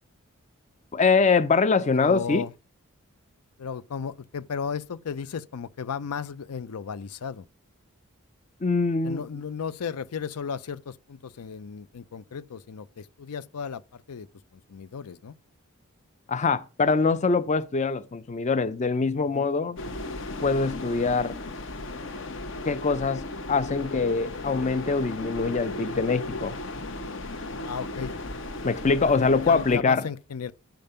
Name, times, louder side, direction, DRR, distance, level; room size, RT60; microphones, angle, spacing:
voice 1, 0.9-2.4 8.6-9.2 16.3-19.8 20.4-21.4 22.7-26.6 28.6-30.0, left 4 dB, 30° left, 0.4 m, -24 dB
voice 2, 1.9-2.5 3.6-7.5 9.0-14.3 14.5-15.3 19.3-19.5 27.6-28.1 29.0-30.5, left 6 dB, 85° left, 0.5 m, -35 dB
sound 1, 19.8-29.8, left 2 dB, 55° left, 0.9 m, -36 dB
10.5 x 5.2 x 5.5 m
head